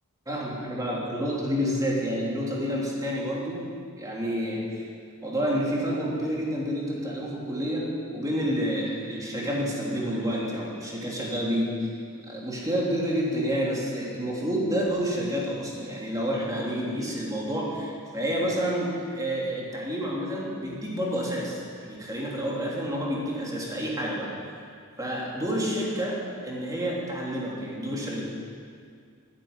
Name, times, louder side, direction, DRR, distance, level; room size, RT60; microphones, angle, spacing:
voice 1, 0.3-3.7 4.0-4.8 5.2-12.0 12.3-24.3 25.0-28.2, equal, 15° right, -4 dB, 3.3 m, -29 dB
13.0 x 9.9 x 9.6 m, 2.2 s
head